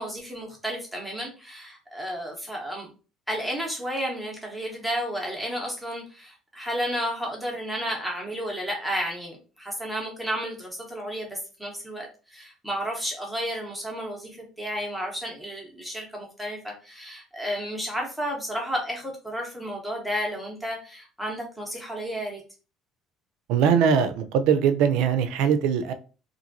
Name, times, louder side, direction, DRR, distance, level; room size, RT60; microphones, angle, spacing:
voice 1, 0.0-2.9 3.3-22.4, equal, ahead, 0.8 m, -32 dB
voice 2, 23.5-25.9, right 7 dB, 75° right, 0.4 m, -21 dB
2.8 x 2.5 x 2.5 m
cardioid pair, 160°, 0 cm